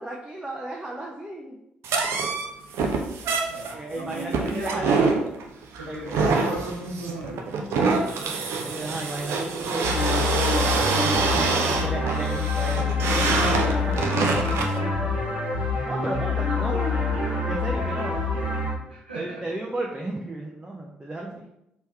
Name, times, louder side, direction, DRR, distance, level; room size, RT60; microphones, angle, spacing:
voice 1, 0.0-1.6 3.7-5.0 5.9-6.2 7.8-10.3 11.3-15.1 15.9-17.0 17.5-18.8 19.1-21.4, right 1 dB, 15° right, -2 dB, 0.7 m, -34 dB
sound 1, 1.8-14.8, right 4 dB, 60° right, 0.5 m, -26 dB
voice 2, 3.5-5.2 5.7-7.5 18.9-19.4, right 1 dB, 85° right, -5 dB, 0.8 m, -35 dB
sound 2, 9.8-18.7, left 4 dB, 80° left, 1.2 m, -26 dB
3.3 x 3.0 x 3.3 m, 0.83 s
figure-of-eight pair, 40°, 5 cm